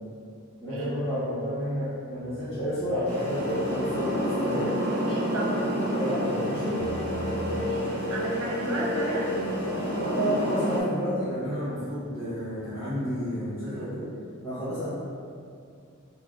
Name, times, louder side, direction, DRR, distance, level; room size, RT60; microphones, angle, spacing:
voice 1, 0.6-4.8 5.9-6.8 10.0-14.1 14.4-14.9, equal, 10° left, -16 dB, 0.8 m, -31 dB
sound 1, 2.1-6.2 6.7-12.2 12.6-13.1, left 1 dB, 65° left, 0.5 m, -44 dB
sound 2, 3.0-10.8, equal, 45° left, 0.8 m, -28 dB
voice 2, 5.1-5.7 7.5-9.3 14.2-14.3, right 1 dB, 90° right, -3 dB, 0.5 m, -34 dB
3.2 x 2.3 x 2.5 m, 2.4 s
head